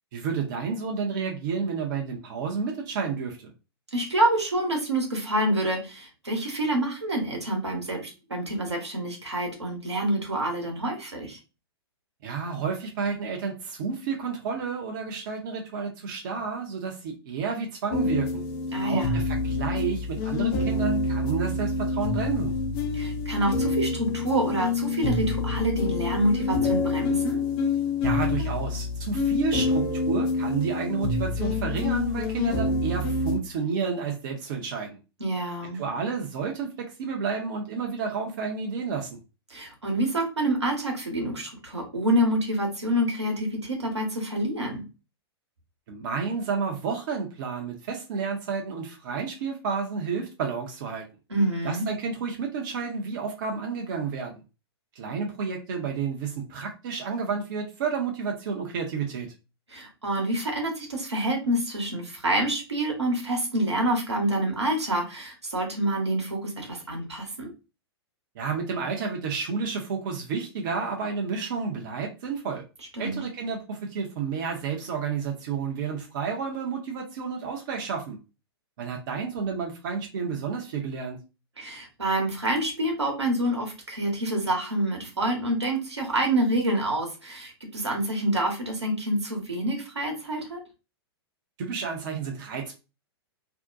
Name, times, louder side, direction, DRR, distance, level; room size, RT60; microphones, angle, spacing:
voice 1, 0.1-3.5 12.2-18.4 18.8-22.5 28.0-35.0 35.7-39.2 45.9-51.0 51.6-54.4 55.0-59.3 68.4-72.6 73.0-78.2 78.8-81.2 91.6-92.8, right 5 dB, 50° right, 1 dB, 0.6 m, -31 dB
voice 2, 3.9-11.4 18.7-19.3 22.9-27.4 35.2-35.8 39.5-44.8 51.3-51.9 59.7-67.5 73.0-73.2 81.6-90.6, right 1 dB, 85° right, 0 dB, 1.0 m, -27 dB
sound 1, 17.9-33.4, left 3 dB, 35° left, 0.5 m, -27 dB
2.6 x 2.1 x 2.5 m, 0.30 s
figure-of-eight pair, 105°, 14 cm